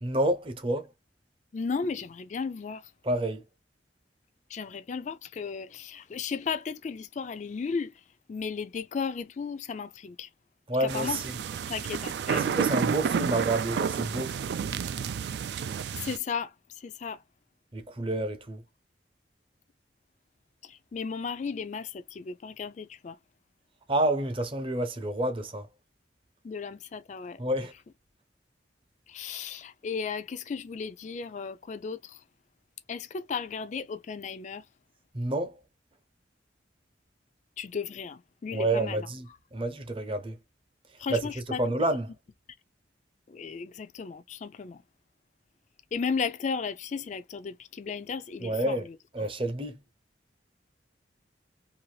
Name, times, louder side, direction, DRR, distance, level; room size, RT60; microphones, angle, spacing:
voice 1, 0.0-0.9 3.0-3.4 10.7-11.4 12.3-14.4 17.7-18.6 23.9-25.7 27.4-27.7 35.1-35.6 38.5-40.4 41.1-42.1 48.4-48.9 49.1-49.8, right 1 dB, 30° right, 0.6 m, -29 dB
voice 2, 1.5-2.9 4.5-8.0 8.3-10.3 10.8-11.2 11.7-12.5 16.0-17.2 20.6-23.2 26.4-27.4 29.1-32.2 32.9-34.6 37.6-39.1 41.0-41.6 43.3-44.8 45.9-49.0, left 5 dB, 40° left, 0.3 m, -35 dB
sound 1, 10.9-16.2, right 7 dB, 65° right, 0.3 m, -30 dB
2.6 x 2.4 x 3.1 m
head